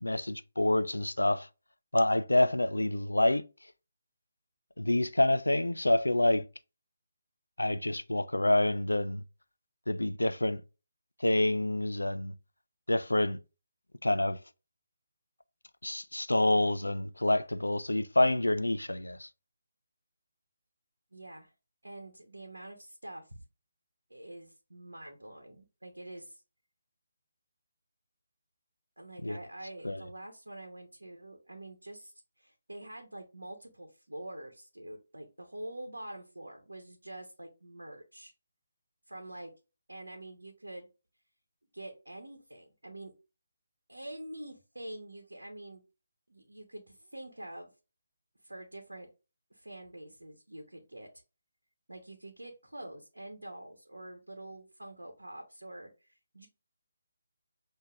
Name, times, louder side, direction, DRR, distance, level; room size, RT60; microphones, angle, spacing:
voice 1, 0.0-1.5 1.9-3.4 4.8-6.5 7.6-9.2 9.9-10.6 11.2-12.3 12.9-13.4 14.0-14.4 15.8-19.3 29.2-29.4 29.8-30.0, left 1 dB, 80° left, 0.5 m, -27 dB
voice 2, 21.1-21.5 21.8-23.4 24.1-26.4 29.0-38.3 39.1-39.5 39.9-40.9 41.7-43.1 43.9-45.8 46.3-47.7 48.4-49.1 49.5-51.1 51.9-56.5, right 1 dB, 80° right, 1.0 m, -46 dB
7.3 x 2.8 x 2.4 m
figure-of-eight pair, 150°, 0 cm